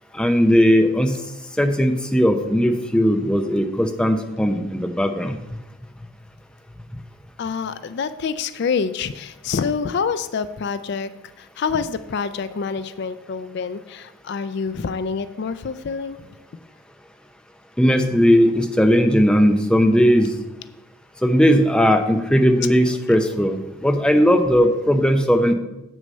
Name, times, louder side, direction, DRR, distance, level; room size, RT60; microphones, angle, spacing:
voice 1, 0.1-1.2 1.6-5.4 17.8-20.4 21.2-25.5, equal, 5° left, 5 dB, 0.6 m, -17 dB
voice 2, 7.4-11.1 11.4-16.3, left 5 dB, 50° left, 13 dB, 0.3 m, -27 dB
7.9 x 6.3 x 5.3 m, 0.96 s
head